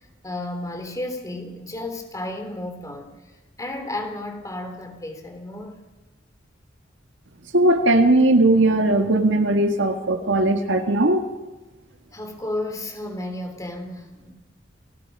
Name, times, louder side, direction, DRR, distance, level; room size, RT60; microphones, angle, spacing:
voice 1, 0.2-3.2 3.6-5.8 12.1-14.3, left 1 dB, 20° left, 5 dB, 3.2 m, -32 dB
voice 2, 7.5-11.3, right 1 dB, 85° right, 5 dB, 1.8 m, -18 dB
29.0 x 18.5 x 5.4 m, 1.1 s
head